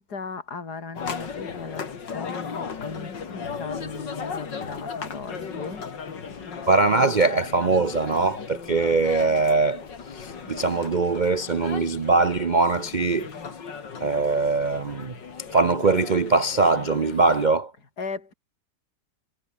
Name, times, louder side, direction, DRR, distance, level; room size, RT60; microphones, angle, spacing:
voice 1, 0.0-5.8 18.0-18.3, left 4 dB, 60° left, 4.1 m, -37 dB
sound 1, 1.0-17.5, left 6 dB, 75° left, 3.0 m, -36 dB
voice 2, 6.7-9.8 10.1-13.3 14.0-15.1 15.5-17.7, right 3 dB, 45° right, 0.6 m, -22 dB
omnidirectional pair, 1.9 m